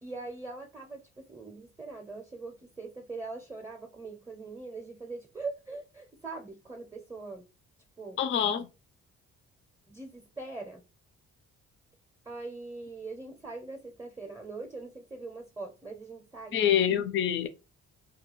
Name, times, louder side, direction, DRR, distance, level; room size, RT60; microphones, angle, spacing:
voice 1, 0.0-7.5 8.0-8.2 9.9-10.8 12.3-16.7, right 3 dB, 10° right, 0.6 m, -42 dB
voice 2, 8.2-8.7 16.5-17.5, left 9 dB, 40° left, 0.4 m, -26 dB
2.3 x 2.3 x 3.0 m
cardioid pair, 90°, 30 cm